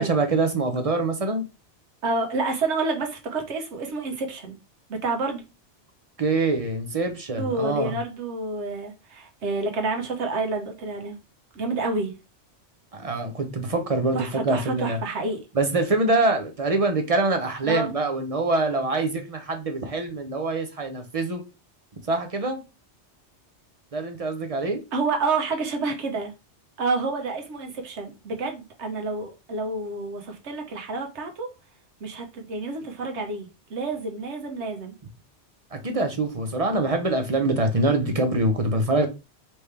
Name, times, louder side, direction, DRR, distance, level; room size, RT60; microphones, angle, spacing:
voice 1, 0.0-1.4 6.2-8.0 12.9-15.0 15.5-21.4 22.1-22.6 23.9-24.8 35.7-39.1, right 2 dB, 40° right, 0.6 m, -24 dB
voice 2, 2.0-4.6 4.9-5.4 7.4-11.1 11.5-12.1 14.1-15.4 17.7-17.9 24.9-26.3 26.8-31.5 32.0-34.9, right 3 dB, 70° right, 1.3 m, -29 dB
4.3 x 3.3 x 3.3 m
omnidirectional pair, 1.2 m